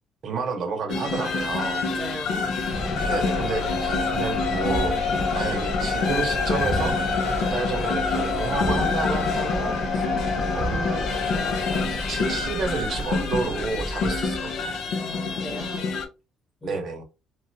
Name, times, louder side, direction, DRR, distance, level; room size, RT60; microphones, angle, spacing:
voice 1, 0.2-1.9 3.0-5.0 5.3-10.0 10.5-14.8 16.6-17.0, right 4 dB, 40° right, 0.8 m, -31 dB
sound 1, 0.9-16.1, left 4 dB, 60° left, 0.5 m, -28 dB
voice 2, 1.9-2.5 14.9-15.9 16.6-16.9, left 1 dB, 10° left, 0.9 m, -37 dB
sound 2, 2.5-14.4, left 2 dB, 40° left, 1.1 m, -29 dB
3.1 x 2.5 x 2.7 m
cardioid pair, 170°, 0 cm